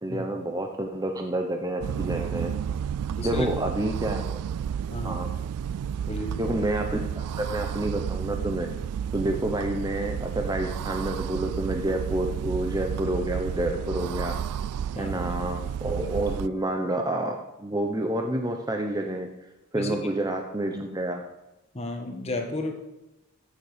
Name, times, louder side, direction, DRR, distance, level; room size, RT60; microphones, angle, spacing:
voice 1, 0.0-2.5 3.2-4.4 5.0-5.3 6.4-8.7 9.1-14.4 15.0-19.3 19.7-21.2, right 1 dB, 15° right, 3 dB, 0.8 m, -29 dB
sound 1, 1.8-16.5, right 8 dB, 90° right, 0.3 m, -31 dB
voice 2, 4.9-5.3 6.1-6.5 14.9-15.2 19.7-20.0 21.7-22.7, left 2 dB, 30° left, 3 dB, 1.6 m, -32 dB
14.5 x 7.3 x 5.1 m, 1.0 s
head